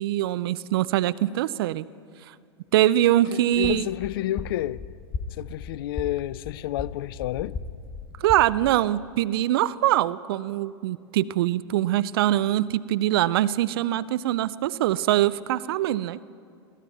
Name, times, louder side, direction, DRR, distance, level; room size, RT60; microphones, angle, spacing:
voice 1, 0.0-1.9 2.7-3.9 8.2-16.2, right 14 dB, 60° right, 0.5 m, -23 dB
voice 2, 3.3-4.8 5.4-7.6, left 14 dB, 55° left, 0.4 m, -30 dB
sound 1, 3.5-8.8, left 4 dB, 30° left, 1.2 m, -37 dB
22.5 x 15.0 x 4.2 m
figure-of-eight pair, 95°, 14 cm